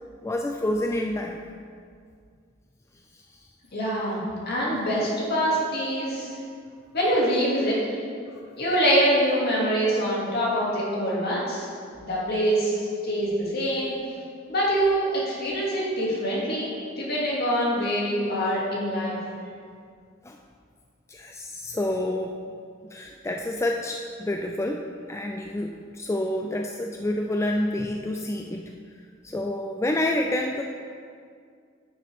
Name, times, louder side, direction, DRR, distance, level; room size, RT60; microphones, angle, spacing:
voice 1, 0.2-1.4 3.1-3.2 20.2-20.4 21.1-22.4 22.8-28.6 29.2-30.6, left 1 dB, 15° left, 2 dB, 0.3 m, -28 dB
voice 2, 3.7-6.3 6.9-7.8 8.6-11.7 12.0-12.7 13.0-13.9 14.5-19.2, equal, 55° left, -5 dB, 2.3 m, -24 dB
10.5 x 6.6 x 3.5 m, 2.2 s
head